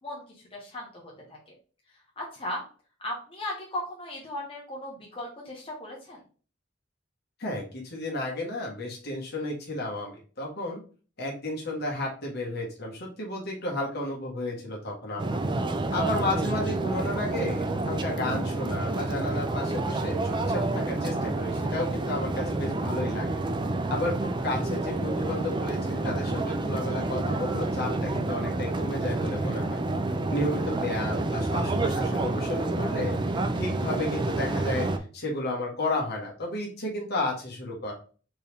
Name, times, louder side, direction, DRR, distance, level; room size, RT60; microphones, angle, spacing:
voice 1, 0.0-1.5 1.9-2.6 3.0-6.2, left 1 dB, 30° left, -3 dB, 1.1 m, -37 dB
voice 2, 7.4-10.8 11.2-15.4 15.9-23.4 23.9-29.8 30.3-34.9 35.1-37.9, left 1 dB, 55° left, -2 dB, 1.6 m, -32 dB
sound 1, 15.2-35.0, right 2 dB, 25° right, 0.4 m, -29 dB
4.4 x 3.2 x 3.5 m, 0.39 s
head